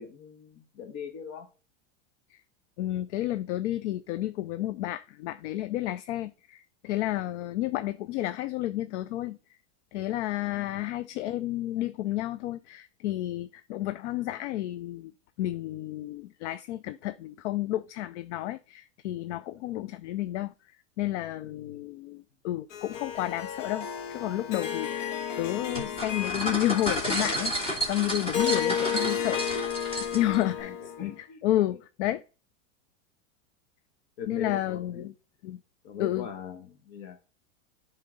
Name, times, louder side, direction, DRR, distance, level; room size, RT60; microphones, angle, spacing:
voice 1, 0.0-1.5 10.4-10.7 21.6-21.8 30.2-31.4 31.7-31.8 34.2-35.1 35.8-37.2, left 7 dB, 45° left, 1.5 m, -41 dB
voice 2, 2.8-9.6 9.9-15.1 15.4-20.5 21.0-25.1 25.4-29.4 30.1-30.7 31.0-32.2 34.3-35.1 35.4-35.6 36.0-36.3, left 14 dB, 70° left, 0.5 m, -31 dB
Harp, 22.7-31.1, left 8 dB, 90° left, 1.7 m, -33 dB
sound 1, 25.7-30.4, equal, 15° left, 2.4 m, -31 dB
11.5 x 3.9 x 3.9 m
supercardioid pair, 165°, 36 cm